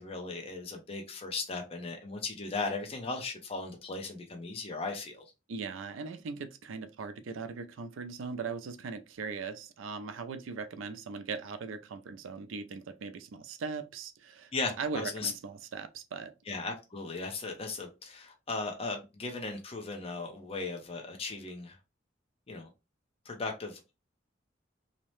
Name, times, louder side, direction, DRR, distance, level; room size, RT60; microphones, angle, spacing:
voice 1, 0.0-5.2 14.5-15.3 16.5-21.8 22.5-22.7 23.3-23.9, left 3 dB, 30° left, 0.5 m, -37 dB
voice 2, 5.5-14.5 14.8-16.3, right 5 dB, 90° right, 0.4 m, -39 dB
2.7 x 2.0 x 3.0 m
head